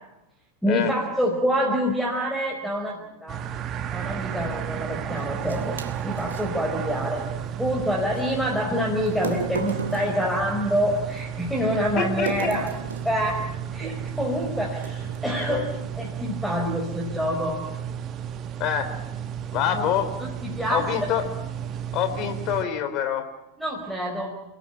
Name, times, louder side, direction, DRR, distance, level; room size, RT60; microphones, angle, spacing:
voice 1, 0.6-3.4 3.9-5.8 6.0-7.3 7.6-12.7 13.0-13.4 13.7-15.6 16.0-17.6 19.7-19.9 20.2-20.9 23.6-24.3, equal, ahead, -1 dB, 5.0 m, -26 dB
sound 1, 3.3-22.6, right 9 dB, 30° right, 1.5 m, -33 dB
sound 2, 5.2-6.5 8.2-8.3 9.1-11.2 12.3-13.2 14.1-14.3 14.8-15.3, right 4 dB, 70° right, 2.6 m, -33 dB
voice 2, 12.0-12.5 15.5-15.6 18.6-18.9 19.5-20.1 20.7-21.2 21.9-23.2, left 9 dB, 40° left, 9 dB, 3.8 m, -26 dB
30.0 x 18.5 x 9.1 m, 0.96 s
figure-of-eight pair, 90°, 0 cm